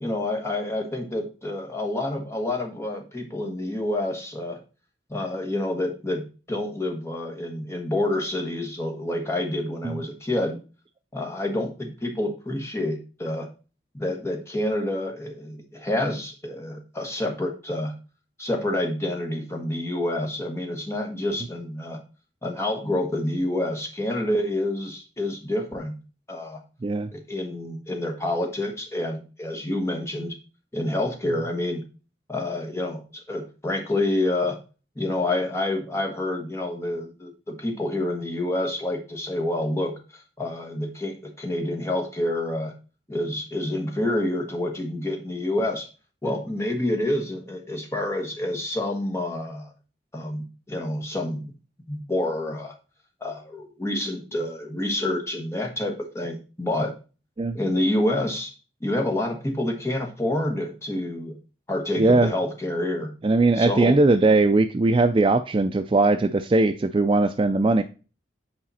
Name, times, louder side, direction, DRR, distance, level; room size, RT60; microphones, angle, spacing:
voice 1, 0.0-4.6 5.1-10.6 11.1-13.5 13.9-17.9 18.4-22.0 22.4-25.9 26.3-26.6 27.1-30.4 30.7-31.8 32.3-34.6 34.9-42.7 43.1-45.9 46.2-49.7 50.1-51.4 51.9-52.7 53.2-56.9 57.5-58.5 58.8-61.4 61.7-63.1 63.5-64.0, left 1 dB, 15° left, 2 dB, 1.4 m, -28 dB
voice 2, 62.0-62.3 63.2-67.8, right 2 dB, 30° right, 9 dB, 0.3 m, -20 dB
8.7 x 5.0 x 4.1 m, 0.34 s
head